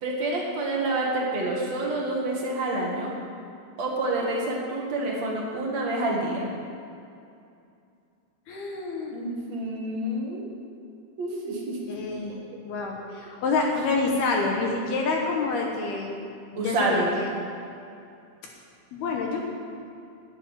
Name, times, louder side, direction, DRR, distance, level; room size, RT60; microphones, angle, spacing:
voice 1, 0.0-3.1 3.8-6.4 9.1-10.5 11.2-11.8 16.6-17.2, right 2 dB, 45° right, -2 dB, 2.5 m, -28 dB
voice 2, 8.5-9.1 11.9-12.3 12.6-16.2 16.5-17.3 18.9-19.4, left 3 dB, 65° left, 0 dB, 2.8 m, -27 dB
11.0 x 10.5 x 9.6 m, 2.5 s
omnidirectional pair, 5.6 m